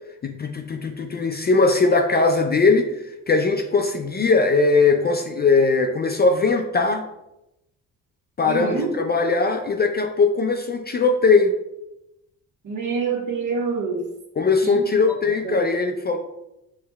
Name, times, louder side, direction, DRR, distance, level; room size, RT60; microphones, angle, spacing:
voice 1, 0.2-7.0 8.4-11.6 14.4-16.2, left 4 dB, 25° left, 5 dB, 0.4 m, -20 dB
voice 2, 8.4-9.0 12.6-14.0 14.6-14.9 15.4-15.7, right 4 dB, 50° right, 2 dB, 1.1 m, -26 dB
5.4 x 3.2 x 2.2 m, 0.90 s
hypercardioid pair, 55°, 39 cm